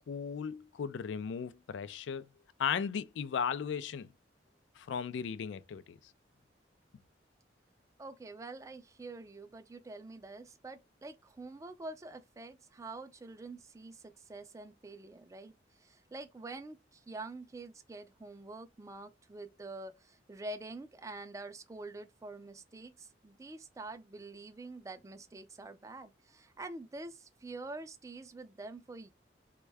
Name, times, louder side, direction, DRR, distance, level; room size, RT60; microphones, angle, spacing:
voice 1, 0.1-2.3 2.6-4.1 4.8-6.0, left 7 dB, 75° left, 0.3 m, -36 dB
voice 2, 8.0-15.5 15.8-29.1, right 2 dB, 15° right, 0.3 m, -46 dB
3.4 x 2.2 x 3.2 m
head